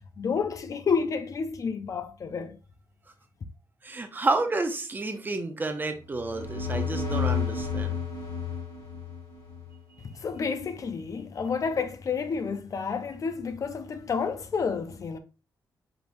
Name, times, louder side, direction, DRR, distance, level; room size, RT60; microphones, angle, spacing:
voice 1, 0.2-2.6 10.0-15.2, left 5 dB, 45° left, 0.5 m, -30 dB
voice 2, 3.8-8.0, right 3 dB, 25° right, 0.6 m, -30 dB
sound 1, 6.1-9.7, left 6 dB, 65° left, 1.9 m, -31 dB
5.2 x 3.1 x 2.6 m
cardioid pair, 110°, 8 cm